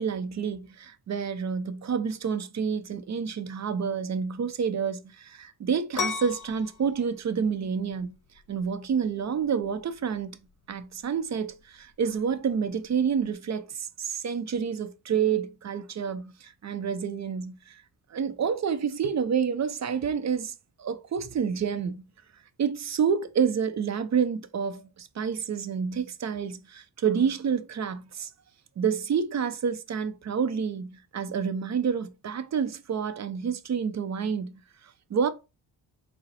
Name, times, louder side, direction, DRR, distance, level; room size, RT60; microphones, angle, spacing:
voice 1, 0.0-8.2 8.5-10.4 10.7-17.8 18.1-20.5 20.8-22.0 22.6-28.3 28.8-34.5 35.1-35.3, right 6 dB, 40° right, 0.6 m, -28 dB
sound 1, 5.9-13.3, left 6 dB, 45° left, 0.8 m, -39 dB
3.8 x 2.1 x 4.1 m
cardioid pair, 60°, 43 cm